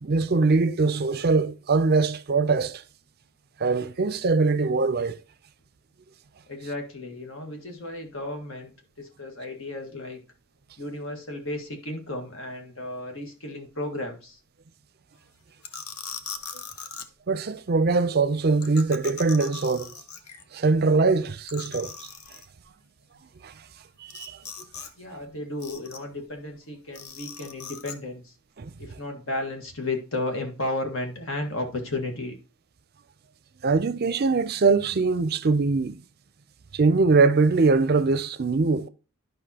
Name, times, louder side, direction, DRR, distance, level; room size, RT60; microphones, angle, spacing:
voice 1, 0.0-2.8 3.6-5.2 17.3-19.9 20.5-21.9 23.4-23.5 24.1-24.4 28.6-28.7 33.6-36.0 36.7-38.9, right 4 dB, 45° right, 0.5 m, -22 dB
voice 2, 6.5-10.2 10.8-14.4 25.0-28.3 28.8-32.4, left 2 dB, 60° left, 1.7 m, -33 dB
sound 1, 15.6-17.1 18.6-20.4 20.8-20.9 21.1-21.2 21.5-22.5 24.1-24.9 25.2-26.2 27.0-28.0, left 6 dB, 80° left, 0.8 m, -40 dB
11.0 x 5.4 x 2.9 m
head